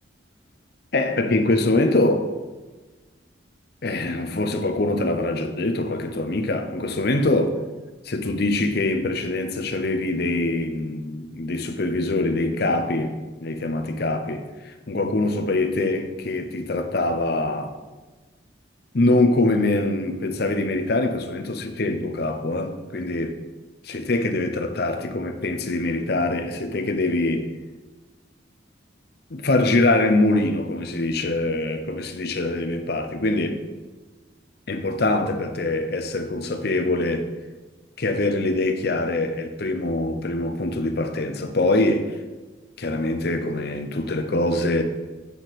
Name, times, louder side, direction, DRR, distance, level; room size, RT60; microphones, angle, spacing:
voice 1, 0.9-2.3 3.8-7.5 8.0-13.2 13.4-17.7 18.9-23.4 23.8-27.5 29.3-33.6 34.7-37.3 38.0-42.1 42.8-44.8, left 2 dB, 55° left, 0.7 m, -23 dB
8.4 x 6.3 x 4.2 m
head